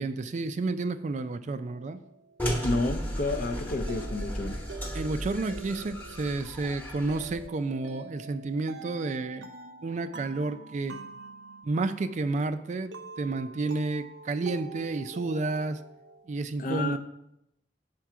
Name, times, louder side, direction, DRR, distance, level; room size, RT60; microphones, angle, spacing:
voice 1, 0.0-2.0 4.9-9.5 9.8-11.0 11.6-15.8 16.3-17.0, right 3 dB, 40° right, 0.3 m, -31 dB
sound 1, 1.6-16.4, right 4 dB, 85° right, 0.7 m, -47 dB
sound 2, 2.4-7.5, equal, 10° left, 1.0 m, -35 dB
voice 2, 2.6-4.6 16.6-17.0, left 2 dB, 45° left, 0.5 m, -30 dB
6.1 x 4.5 x 5.7 m
head